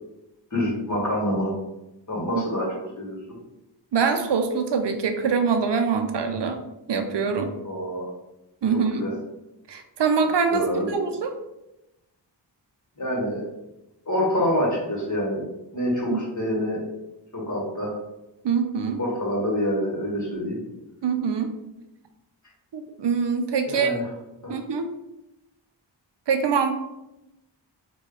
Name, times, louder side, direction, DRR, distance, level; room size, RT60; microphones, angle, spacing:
voice 1, 0.5-1.5 2.1-2.7 3.0-3.2 7.6-8.1 8.7-9.1 10.5-10.9 13.0-13.5 14.1-15.4 15.7-16.8 17.3-17.9 19.0-20.6 23.6-24.1 24.4-24.6, equal, 40° left, -2 dB, 1.3 m, -26 dB
voice 2, 3.9-6.6 6.9-7.5 8.6-9.1 9.7-11.3 16.1-16.2 18.4-19.0 21.0-21.5 22.7-23.9 24.5-24.9 26.3-26.7, right 5 dB, 70° right, 6 dB, 0.5 m, -24 dB
4.4 x 2.3 x 3.1 m, 0.93 s
wide cardioid pair, 60°, 44 cm